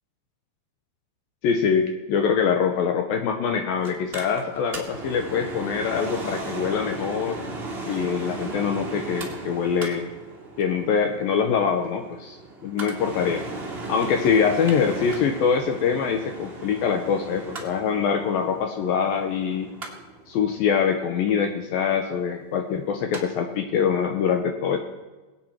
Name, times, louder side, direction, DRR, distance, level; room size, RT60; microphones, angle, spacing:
voice 1, 1.4-7.4 7.9-10.0 10.6-12.4 12.6-13.4 13.9-19.7 20.3-24.8, left 6 dB, 75° left, 5 dB, 2.3 m, -24 dB
Mechanical fan, 3.8-23.2 23.5-23.6, right 2 dB, 70° right, 0.5 m, -36 dB
23.0 x 8.7 x 4.4 m, 1.2 s
omnidirectional pair, 5.0 m